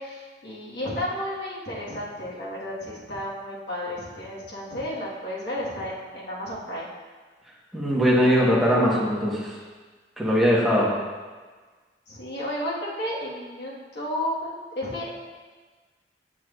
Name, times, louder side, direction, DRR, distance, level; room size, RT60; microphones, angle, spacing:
voice 1, 0.0-6.9 12.1-15.1, left 1 dB, 70° left, -6 dB, 1.5 m, -32 dB
voice 2, 7.7-9.5 10.2-10.9, equal, ahead, -7 dB, 1.2 m, -20 dB
7.2 x 6.0 x 2.4 m, 1.4 s
head